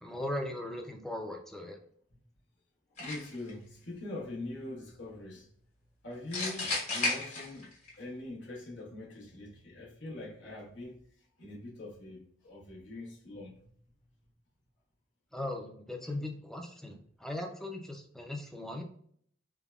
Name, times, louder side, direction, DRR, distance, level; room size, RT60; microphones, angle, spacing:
voice 1, 0.0-1.8 15.3-18.8, left 1 dB, ahead, 0.3 m, -38 dB
voice 2, 2.9-5.5 6.0-7.7 8.0-11.0 11.4-13.6 16.0-16.1, left 2 dB, 80° left, 1.0 m, -43 dB
sound 1, 3.0-3.5 6.3-7.9, left 2 dB, 40° left, 1.2 m, -33 dB
3.4 x 2.1 x 2.2 m
head